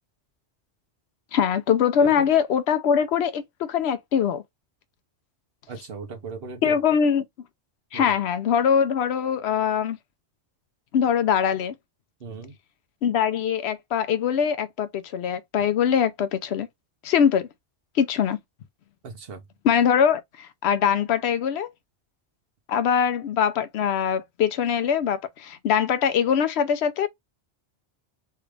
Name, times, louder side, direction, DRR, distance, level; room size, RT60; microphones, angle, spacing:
voice 1, 1.3-4.4 6.6-7.2 7.9-10.0 10.9-11.7 13.0-16.7 17.0-17.5 17.9-18.4 19.6-21.7 22.7-27.1, left 8 dB, 70° left, 0.8 m, -22 dB
voice 2, 5.7-6.8 7.9-8.1 12.2-12.6 19.0-19.4, right 4 dB, 60° right, 0.9 m, -37 dB
3.3 x 2.4 x 3.1 m
omnidirectional pair, 1.2 m